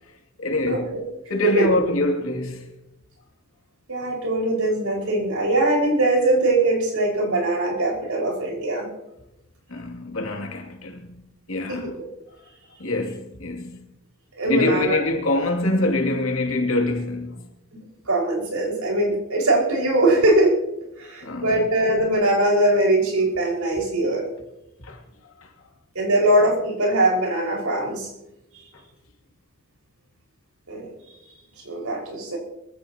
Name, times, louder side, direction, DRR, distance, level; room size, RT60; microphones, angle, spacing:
voice 1, 0.4-0.9 1.3-2.7 9.7-11.2 11.5-11.9 12.8-13.8 14.5-17.4 21.2-21.7 24.8-25.0 25.4-25.5, left 2 dB, 75° left, 2.6 m, -25 dB
voice 2, 3.9-8.9 11.7-12.0 14.4-15.0 18.1-20.6 21.0-24.3 26.0-28.1 30.7-30.9 31.6-32.4, right 1 dB, 85° right, 5.4 m, -21 dB
23.5 x 15.0 x 2.9 m
head